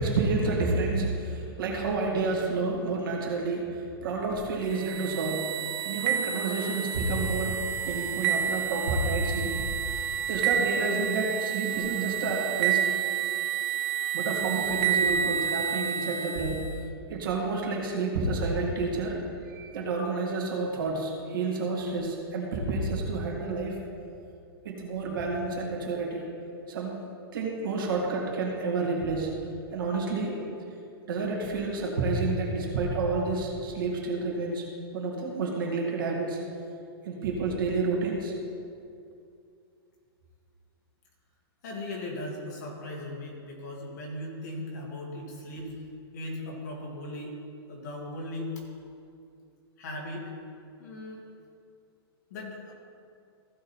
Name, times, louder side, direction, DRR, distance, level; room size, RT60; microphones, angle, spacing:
voice 1, 0.0-9.6 9.9-10.0 10.3-12.8 14.1-16.7 17.1-19.2 19.5-23.8 24.6-26.3 26.7-27.0 27.3-29.3 29.7-30.5 31.1-34.6 34.9-36.4 37.0-38.3, right 3 dB, 55° right, -1 dB, 2.1 m, -29 dB
sound 1, 4.7-16.8, right 9 dB, 20° right, 0.4 m, -29 dB
voice 2, 41.6-45.8 46.1-47.4 47.7-48.6 49.8-50.3 50.8-51.2 52.3-52.7, left 1 dB, 45° left, -2 dB, 2.1 m, -38 dB
15.5 x 5.2 x 4.3 m, 2.5 s
hypercardioid pair, 180°, 13 cm